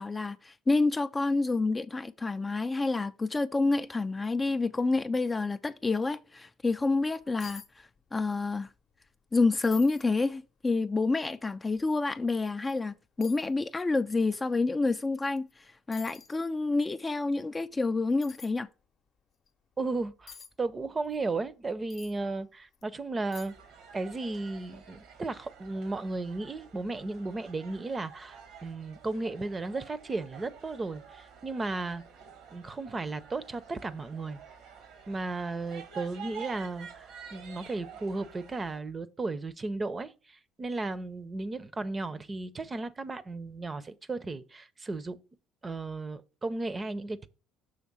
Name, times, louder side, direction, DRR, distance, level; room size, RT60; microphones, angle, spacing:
voice 1, 0.0-7.6 8.1-8.7 9.3-18.7, left 3 dB, 20° left, 0.3 m, -28 dB
sound 1, 7.4-7.7 8.0-8.5 8.9-9.0 9.6-10.1 10.7-10.8 12.3-12.4 13.2-13.5 15.4-15.5 15.9-16.4 18.2-18.5 20.3-20.5 21.9-22.2 22.7-22.8 23.3-23.7 24.0-24.1, left 7 dB, 50° left, 0.7 m, -48 dB
voice 2, 19.8-23.5 23.9-32.0 32.5-34.4 35.1-45.2 45.6-47.3, right 3 dB, 25° right, 0.6 m, -35 dB
sound 2, 23.5-38.8, right 7 dB, 75° right, 1.2 m, -50 dB
6.4 x 3.2 x 6.0 m
supercardioid pair, 85°, 0 cm